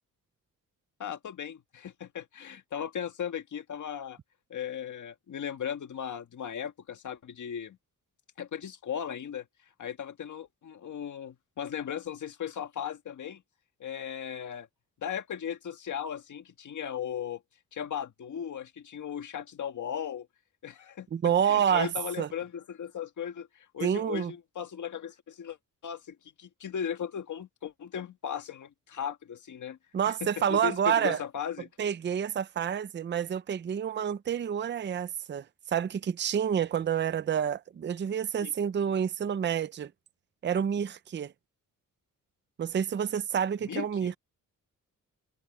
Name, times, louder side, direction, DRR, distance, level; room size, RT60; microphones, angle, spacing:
voice 1, 1.0-4.2 4.5-7.8 8.4-9.5 9.8-13.4 13.8-14.7 15.0-17.4 17.7-20.3 20.6-25.6 25.8-29.8 30.1-31.7 38.4-38.5 43.6-44.1, left 8 dB, 60° left, 1.8 m, -37 dB
voice 2, 21.1-21.9 22.2-22.3 23.8-24.3 29.9-31.2 31.8-39.9 40.4-41.3 42.6-44.1, right 8 dB, 35° right, 0.5 m, -28 dB
wide cardioid pair, 170°, 33 cm